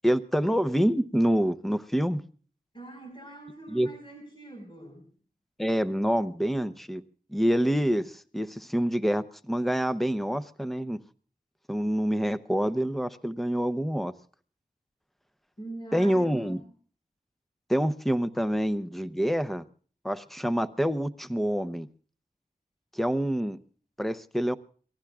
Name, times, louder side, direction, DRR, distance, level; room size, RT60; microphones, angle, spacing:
voice 1, 0.0-2.2 3.7-3.9 5.6-7.0 7.3-11.0 11.7-14.1 15.9-16.6 17.7-19.6 20.0-21.9 22.9-23.6 24.0-24.6, equal, ahead, 10 dB, 0.8 m, -26 dB
voice 2, 2.7-5.1 15.6-16.6, right 2 dB, 35° left, 2 dB, 5.3 m, -43 dB
27.0 x 19.0 x 2.4 m, 0.43 s
wide cardioid pair, 80°, 16 cm